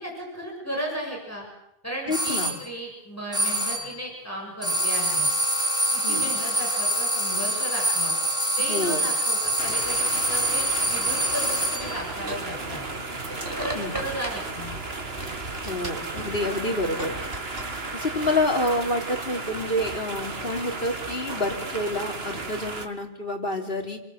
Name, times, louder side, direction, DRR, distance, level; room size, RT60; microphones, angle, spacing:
voice 1, 0.0-1.5 1.8-5.3 5.9-8.1 8.6-12.9 13.3-14.8, right 1 dB, 15° left, -2 dB, 7.6 m, -35 dB
voice 2, 2.1-2.5 6.0-6.3 8.7-9.1 13.7-13.9 15.6-17.2 17.9-24.0, left 1 dB, 60° left, 3 dB, 3.7 m, -28 dB
sound 1, 2.1-2.6 3.3-4.0 4.6-12.0, right 1 dB, 5° right, 4.6 m, -25 dB
sound 2, 9.6-22.9, right 3 dB, 80° right, 2.3 m, -34 dB
sound 3, 11.8-18.8, right 1 dB, 65° right, 4.1 m, -38 dB
28.5 x 23.0 x 8.1 m, 0.86 s
omnidirectional pair, 1.0 m